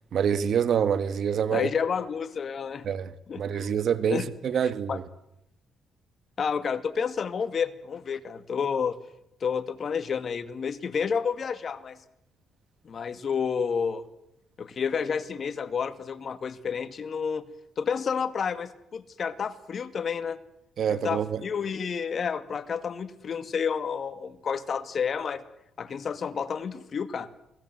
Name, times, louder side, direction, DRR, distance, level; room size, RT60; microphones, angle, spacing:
voice 1, 0.1-1.7 2.8-5.0 20.8-21.4, right 8 dB, 60° right, 1.6 m, -26 dB
voice 2, 1.5-2.8 3.3-3.7 4.1-4.3 4.9-5.0 6.4-9.0 9.4-12.0 12.8-14.0 14.6-17.4 17.8-20.4 20.9-25.4 25.8-27.3, left 6 dB, 50° left, 2.1 m, -30 dB
28.5 x 19.5 x 7.9 m
cardioid pair, 90°, 0 cm